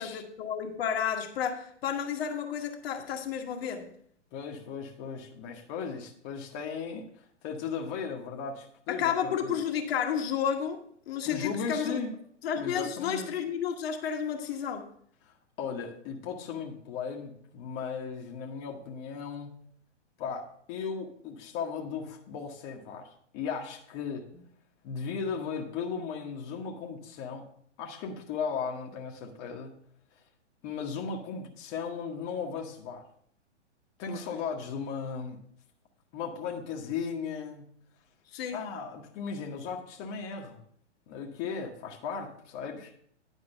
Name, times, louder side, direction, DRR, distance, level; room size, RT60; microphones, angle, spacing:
voice 1, 0.0-3.9 8.9-12.0 12.4-14.9 34.1-34.3 38.3-38.6, left 8 dB, 55° left, 3 dB, 1.3 m, -31 dB
voice 2, 4.3-9.6 11.3-12.1 12.6-13.3 15.6-19.6 20.2-24.3 24.8-27.4 27.8-29.7 30.6-33.1 34.0-35.4 36.1-37.6 38.5-40.6 41.1-42.9, left 6 dB, 35° left, 0 dB, 1.2 m, -36 dB
10.0 x 5.0 x 5.4 m, 0.64 s
hypercardioid pair, 125°, 36 cm